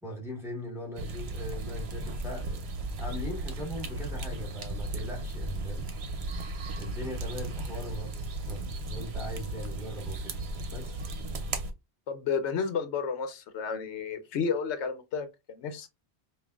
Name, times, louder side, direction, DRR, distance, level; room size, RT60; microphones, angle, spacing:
voice 1, 0.0-5.9 6.8-8.6 8.9-10.4 10.7-11.0, equal, ahead, 1.4 m, -40 dB
sound 1, 1.0-11.7, right 2 dB, 70° right, 1.0 m, -35 dB
voice 2, 12.1-15.9, left 6 dB, 85° left, 1.0 m, -32 dB
5.3 x 2.4 x 2.3 m
omnidirectional pair, 1.1 m